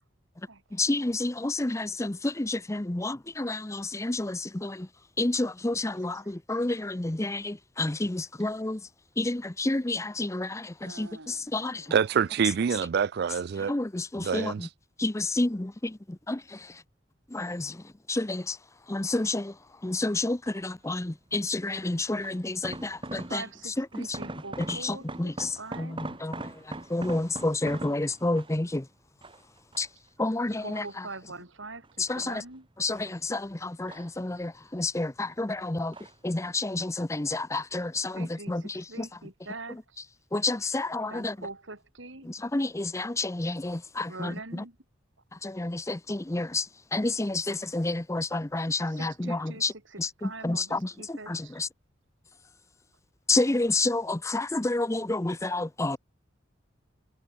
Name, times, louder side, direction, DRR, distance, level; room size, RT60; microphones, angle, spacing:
voice 1, 0.7-4.9 5.2-8.9 9.2-11.9 13.6-14.7 15.0-15.7 16.3-16.4 17.3-17.8 18.1-18.6 18.9-24.2 24.6-28.9 29.8-29.9 30.2-31.1 32.0-32.4 32.8-36.0 36.2-39.1 39.7-39.8 40.3-41.5 42.2-44.6 45.3-49.7 50.0-51.7 53.3-56.0, left 2 dB, 15° left, 0.6 m, -30 dB
voice 2, 10.8-11.9 12.2-12.4 23.3-26.0 30.6-32.7 38.1-40.0 41.1-42.3 44.1-44.8 48.9-51.6, right 3 dB, 85° right, 5.8 m, -44 dB
voice 3, 11.9-13.7 14.2-14.6, right 6 dB, 55° right, 0.4 m, -26 dB
sound 1, 20.5-20.8 21.7-23.6 23.9-28.7 29.2-30.1 30.5-31.3 31.8-33.2 33.5-34.6 34.9-35.5 35.9-36.3 36.6-36.7, right 2 dB, 25° right, 2.6 m, -42 dB
head